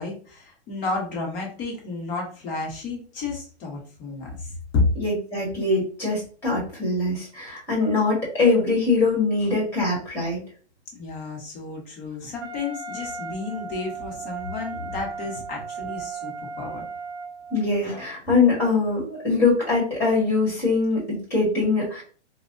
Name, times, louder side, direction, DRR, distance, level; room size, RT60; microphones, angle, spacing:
voice 1, 0.0-4.9 10.9-16.8, left 3 dB, 25° left, -1 dB, 0.8 m, -31 dB
voice 2, 5.0-10.4 17.5-22.0, left 3 dB, 5° left, -4 dB, 1.4 m, -23 dB
Wind instrument woodwind instrument, 12.4-17.7, right 4 dB, 35° right, 0.7 m, -36 dB
3.2 x 2.1 x 2.5 m, 0.41 s
hypercardioid pair, 135°, 35 cm